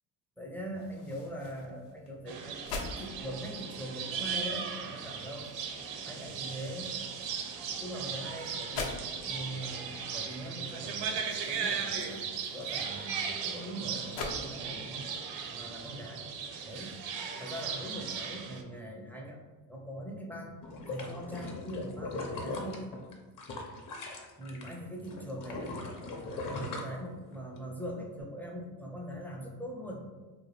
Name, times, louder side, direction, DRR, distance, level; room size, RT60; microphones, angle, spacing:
voice 1, 0.4-5.5 6.0-7.0 7.7-9.0 9.3-12.2 12.5-15.1 15.5-16.2 16.6-17.0 17.4-19.4 19.7-20.6 20.9-22.9 24.4-25.8 26.4-30.0, equal, 5° left, -1 dB, 0.4 m, -41 dB
sound 1, 0.7-14.4, left 4 dB, 75° left, 0.8 m, -46 dB
sound 2, 2.3-18.6, right 6 dB, 65° right, 0.6 m, -37 dB
sound 3, 20.6-24.7 25.0-27.6 28.0-28.1, left 3 dB, 40° left, 0.7 m, -39 dB
3.0 x 2.2 x 3.1 m, 1.3 s
supercardioid pair, 85°, 47 cm